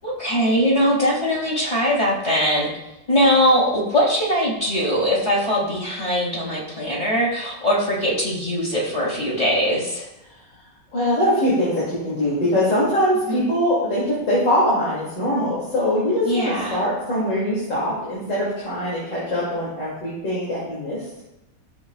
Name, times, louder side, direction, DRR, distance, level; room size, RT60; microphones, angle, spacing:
voice 1, 0.0-2.7 3.1-10.1 13.3-13.5 16.2-16.8, equal, 20° left, -4 dB, 2.4 m, -21 dB
voice 2, 10.9-21.2, equal, 90° left, -8 dB, 3.2 m, -22 dB
13.5 x 7.4 x 2.4 m, 0.90 s
omnidirectional pair, 1.8 m